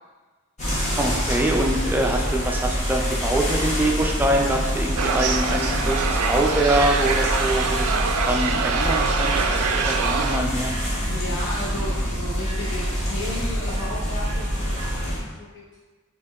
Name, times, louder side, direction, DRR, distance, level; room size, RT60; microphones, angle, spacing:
sound 1, 0.6-15.2, equal, 30° left, 1.2 m, -26 dB
voice 1, 1.0-10.7, right 1 dB, 10° right, 1 dB, 0.3 m, -24 dB
sound 2, 5.0-10.4, right 5 dB, 80° right, 0.4 m, -25 dB
voice 2, 10.5-15.8, left 1 dB, 55° left, -7 dB, 0.7 m, -35 dB
4.2 x 2.9 x 3.9 m, 1.3 s
head